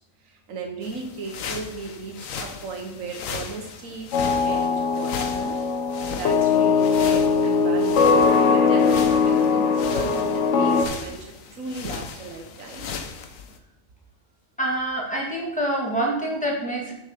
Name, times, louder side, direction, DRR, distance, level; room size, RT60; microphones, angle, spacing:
voice 1, 0.2-4.1 4.4-5.6 6.1-8.2 8.5-12.9, right 3 dB, 85° right, 2 dB, 1.4 m, -35 dB
sound 1, 0.8-13.6, left 6 dB, 90° left, 1.2 m, -37 dB
sound 2, 4.1-10.9, left 5 dB, 65° left, 1.0 m, -20 dB
voice 2, 14.6-16.9, right 1 dB, 5° left, -3 dB, 2.0 m, -26 dB
6.6 x 6.5 x 5.0 m, 0.89 s
omnidirectional pair, 1.3 m